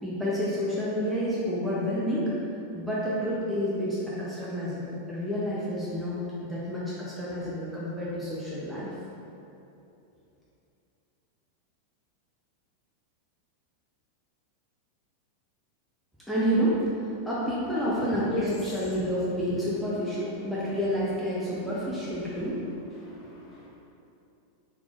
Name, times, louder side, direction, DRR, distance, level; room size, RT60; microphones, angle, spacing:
voice 1, 0.0-2.3 2.7-8.9 16.3-22.6 22.9-23.3, equal, ahead, -9 dB, 0.6 m, -29 dB
voice 2, 23.0-23.7, left 3 dB, 35° left, -6 dB, 0.9 m, -36 dB
3.4 x 3.2 x 2.5 m, 2.7 s
figure-of-eight pair, 90°, 0 cm